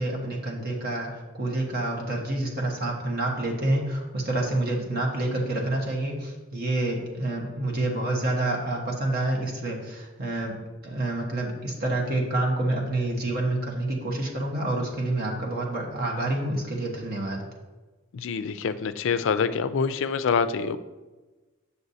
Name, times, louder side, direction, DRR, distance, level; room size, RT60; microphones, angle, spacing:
voice 1, 0.0-17.4, right 2 dB, 50° right, -1 dB, 1.2 m, -28 dB
voice 2, 18.1-20.8, left 6 dB, 65° left, 11 dB, 0.4 m, -26 dB
8.0 x 6.8 x 2.7 m, 1.2 s
head